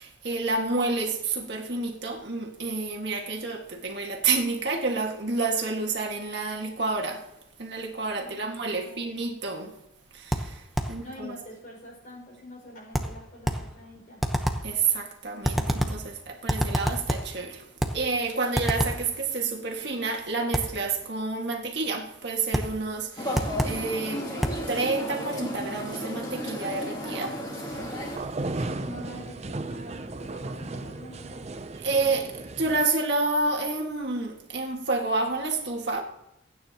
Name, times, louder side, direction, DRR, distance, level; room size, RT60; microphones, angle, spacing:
voice 1, 0.0-7.2 7.6-9.7 10.1-11.3 14.6-17.7 17.9-24.4 24.7-27.4 31.7-36.0, right 3 dB, 60° right, 1.8 m, -29 dB
voice 2, 8.1-9.3 10.7-14.2 28.6-31.6, left 1 dB, 45° left, 5.5 m, -45 dB
sound 1, 10.3-11.0 12.9-13.7 14.2-14.7 15.4-16.1 16.5-17.4 17.8-18.1 18.5-19.1 20.5-20.8 22.5-22.8 23.3-23.9 24.4-24.7, equal, ahead, 0.9 m, -28 dB
sound 2, 23.2-28.2, equal, 20° left, 2.6 m, -34 dB
sound 3, 27.7-32.8, right 2 dB, 35° right, 0.5 m, -35 dB
27.5 x 9.4 x 2.9 m
head